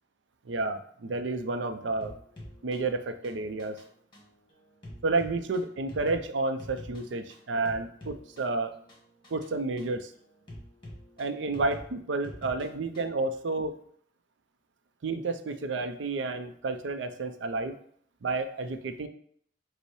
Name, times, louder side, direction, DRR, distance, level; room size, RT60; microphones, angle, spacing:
voice 1, 0.4-2.1 2.6-3.8 5.0-8.7 9.3-10.1 11.2-13.8 15.0-17.8 18.2-19.1, right 3 dB, 80° right, 8 dB, 0.5 m, -31 dB
sound 1, 2.0-13.2, left 1 dB, 25° left, 1.3 m, -48 dB
5.2 x 2.1 x 4.7 m, 0.63 s
head